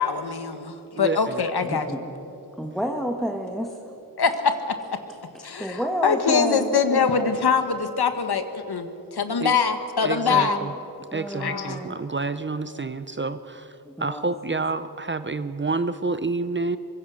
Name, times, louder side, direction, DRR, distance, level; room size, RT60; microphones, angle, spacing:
voice 1, 0.0-1.9 4.2-4.3 5.4-10.6 11.4-11.8, left 6 dB, 80° left, 8 dB, 1.7 m, -23 dB
voice 2, 1.0-1.4 9.4-9.5 10.0-10.5 11.1-13.6 14.0-16.8, right 3 dB, 30° right, 12 dB, 0.7 m, -28 dB
voice 3, 1.6-2.0 2.6-3.8 5.6-7.3 10.3-10.7 11.1-11.9 14.0-14.7, equal, ahead, 2 dB, 1.5 m, -30 dB
24.0 x 22.0 x 6.4 m, 3.0 s
wide cardioid pair, 110°, 38 cm